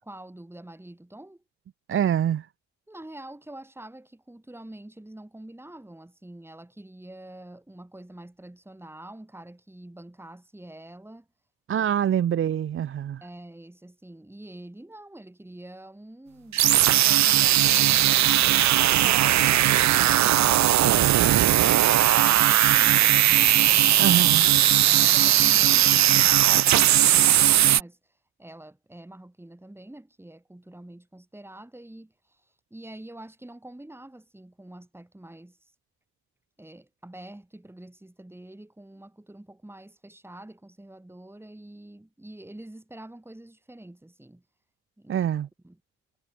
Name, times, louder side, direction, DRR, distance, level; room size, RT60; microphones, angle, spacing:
voice 1, 0.0-1.4 2.9-11.3 13.2-16.7 17.0-19.6 24.5-28.0 28.4-35.7 36.6-44.4 45.0-45.2 45.6-45.8, right 1 dB, 10° right, 6.2 m, -45 dB
voice 2, 1.9-2.5 11.7-13.2 24.0-24.5 45.1-45.5, right 9 dB, 45° right, 0.6 m, -25 dB
sound 1, 16.5-27.8, right 12 dB, 65° right, 1.0 m, -19 dB
cardioid pair, 90°, 30 cm